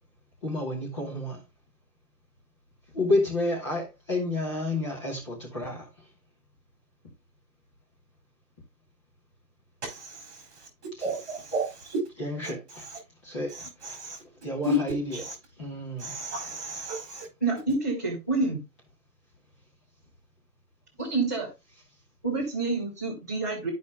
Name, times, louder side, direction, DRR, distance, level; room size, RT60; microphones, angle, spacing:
voice 1, 0.4-1.4 2.9-5.9 12.2-12.9 13.2-13.5 13.8-14.0 14.4-15.2 15.6-16.2, left 1 dB, 20° left, 1.4 m, -30 dB
voice 2, 9.8-10.4 11.0-12.0 13.8-14.2 14.6-14.8 15.1-15.3 16.0-17.3, equal, 40° right, 3.9 m, -32 dB
voice 3, 17.4-18.6 21.0-21.5 22.2-23.7, right 3 dB, 10° right, 0.7 m, -28 dB
12.0 x 5.3 x 2.3 m
hypercardioid pair, 175°, 49 cm